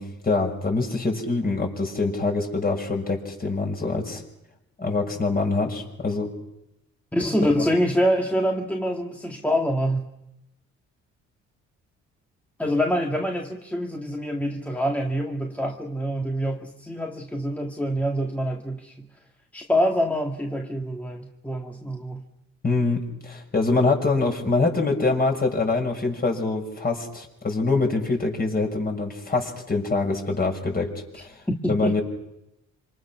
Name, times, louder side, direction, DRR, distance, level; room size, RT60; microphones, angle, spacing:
voice 1, 0.0-4.2 4.8-6.3 7.6-7.7 22.6-31.4 31.7-32.0, left 3 dB, 30° left, 2 dB, 6.3 m, -25 dB
voice 2, 7.1-10.1 12.6-19.1 19.5-22.2 31.5-32.0, equal, 5° left, 1 dB, 2.1 m, -25 dB
27.0 x 26.0 x 6.2 m, 0.85 s
cardioid pair, 90°, 30 cm